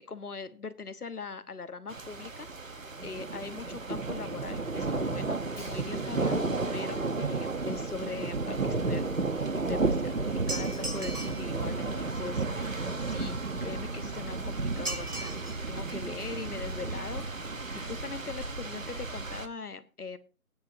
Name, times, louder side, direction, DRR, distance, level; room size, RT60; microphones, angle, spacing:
voice 1, 0.0-6.5 6.7-9.1 9.4-10.2 10.5-15.4 15.7-17.2 17.7-20.2, left 5 dB, 75° left, 12 dB, 1.2 m, -41 dB
sound 1, 1.9-19.5, right 3 dB, 60° right, 1.2 m, -33 dB
Hi-hat, 5.6-9.5, right 1 dB, 20° right, 3.8 m, -56 dB
sound 2, 10.5-11.5 14.9-15.6 16.0-16.1 16.9-17.0 17.3-17.4 17.7-17.9 18.1-18.2, right 2 dB, 75° right, 3.9 m, -38 dB
19.0 x 9.5 x 2.7 m, 0.35 s
figure-of-eight pair, 180°, 45 cm